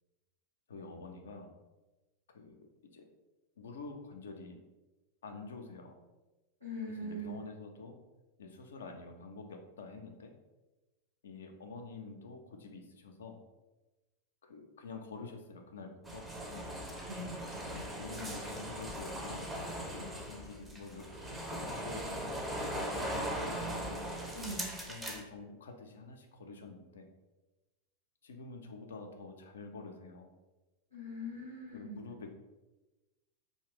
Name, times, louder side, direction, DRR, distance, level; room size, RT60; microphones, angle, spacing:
voice 1, 0.7-1.5 2.3-2.6 2.9-3.1 3.6-4.6 5.2-6.0 6.9-8.0 8.4-10.3 11.2-13.3 14.4-16.2 17.5-23.7 24.9-27.1 28.2-30.3 31.7-32.3, left 4 dB, 65° left, 4 dB, 0.4 m, -48 dB
voice 2, 6.6-7.3 17.1-17.4 24.3-24.7 30.9-32.0, equal, 90° right, -7 dB, 1.0 m, -41 dB
sound 1, 16.0-25.2, right 1 dB, 10° right, 0.4 m, -39 dB
2.4 x 2.1 x 3.3 m, 1.1 s
figure-of-eight pair, 90°, 0 cm